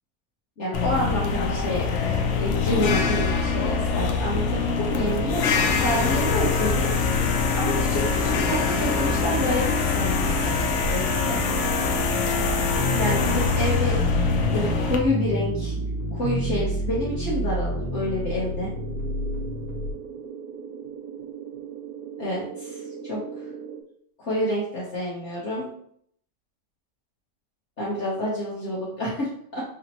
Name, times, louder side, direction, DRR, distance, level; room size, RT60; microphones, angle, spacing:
voice 1, 0.6-6.9 7.5-11.5 12.9-14.0 14.5-15.7 16.1-18.7 22.2-23.4 24.2-25.7 27.8-29.6, equal, 45° left, -7 dB, 1.1 m, -28 dB
sound 1, 0.7-15.0, left 5 dB, 80° left, 0.6 m, -24 dB
sound 2, 4.0-23.8, right 7 dB, 70° right, 0.9 m, -38 dB
sound 3, 10.8-19.9, equal, 60° left, 1.7 m, -30 dB
5.0 x 2.9 x 2.9 m, 0.67 s
omnidirectional pair, 1.9 m